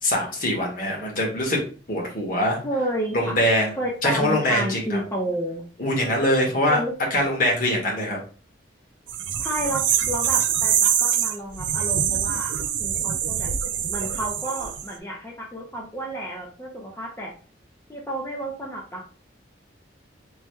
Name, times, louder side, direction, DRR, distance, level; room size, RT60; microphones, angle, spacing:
voice 1, 0.0-1.6 1.9-2.6 3.1-3.8 4.0-5.0 5.8-6.8 7.1-8.2, left 1 dB, 45° left, -1 dB, 1.4 m, -23 dB
voice 2, 2.6-3.4 3.8-5.6 6.7-6.9 9.4-12.5 12.8-13.5 13.9-17.3 17.9-19.2, right 1 dB, 15° left, -3 dB, 0.6 m, -31 dB
sound 1, 9.1-14.9, right 9 dB, 75° right, 0.4 m, -24 dB
4.7 x 3.1 x 2.2 m, 0.38 s
head